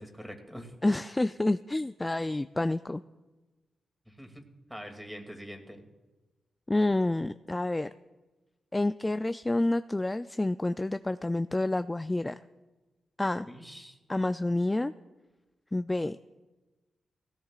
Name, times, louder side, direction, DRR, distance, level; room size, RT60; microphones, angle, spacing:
voice 1, 0.0-0.7 4.1-4.4 4.7-5.8 13.5-14.0, equal, 5° right, 4 dB, 2.5 m, -44 dB
voice 2, 0.8-3.0 6.7-7.9 8.7-12.4 13.2-13.5 14.1-14.9 15.7-16.2, left 2 dB, 20° left, 11 dB, 0.4 m, -28 dB
18.0 x 17.0 x 2.5 m, 1.2 s
cardioid pair, 60°, 0 cm